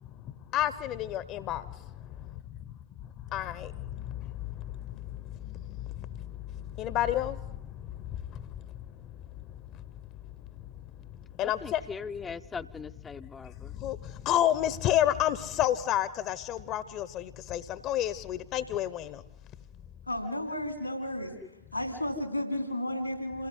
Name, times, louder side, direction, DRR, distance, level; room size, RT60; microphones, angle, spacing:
voice 1, 0.0-2.2 3.3-8.7 8.9-9.1 9.4-9.5 9.7-9.8 11.4-11.9 13.4-19.2, left 12 dB, 35° left, 1.1 m, -31 dB
voice 2, 11.4-13.7, left 5 dB, 15° left, 0.8 m, -40 dB
voice 3, 20.1-21.3 21.7-23.5, left 1 dB, 85° left, 4.4 m, -33 dB
28.0 x 18.5 x 9.7 m
figure-of-eight pair, 90°, 0 cm